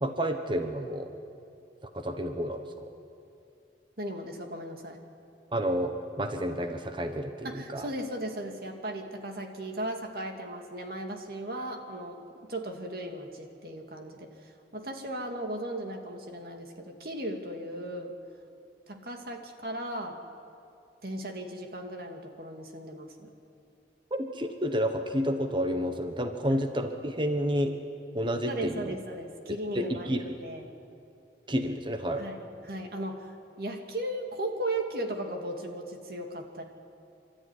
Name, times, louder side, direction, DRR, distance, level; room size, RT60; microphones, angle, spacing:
voice 1, 0.0-1.1 1.9-2.9 5.5-7.9 24.1-27.8 28.1-28.9 29.7-30.2 31.5-32.3, equal, 25° right, 6 dB, 1.2 m, -30 dB
voice 2, 4.0-5.0 7.4-12.2 12.5-18.1 18.9-20.2 21.0-23.3 26.5-26.6 28.5-30.6 32.2-36.6, right 1 dB, 55° right, 3 dB, 2.4 m, -37 dB
29.0 x 13.0 x 10.0 m, 2.6 s
head